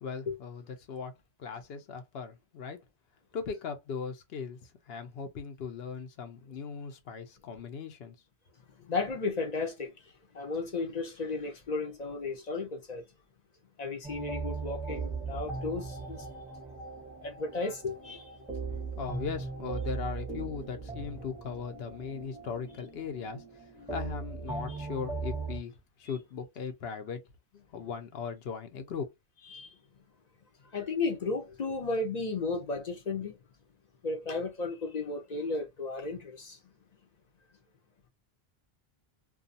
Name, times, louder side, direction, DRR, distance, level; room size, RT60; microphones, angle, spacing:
voice 1, 0.0-1.1 1.4-2.8 3.3-8.2 18.8-25.7 26.0-27.2 27.5-29.1, left 6 dB, 75° left, 0.9 m, -39 dB
voice 2, 8.9-9.9 10.3-13.0 13.8-16.2 17.2-18.3 24.7-24.8 29.5-29.7 30.7-33.4 34.0-36.6, left 3 dB, 45° left, 0.7 m, -34 dB
sound 1, 14.0-25.6, right 4 dB, 5° right, 0.5 m, -39 dB
2.4 x 2.3 x 2.6 m
omnidirectional pair, 1.0 m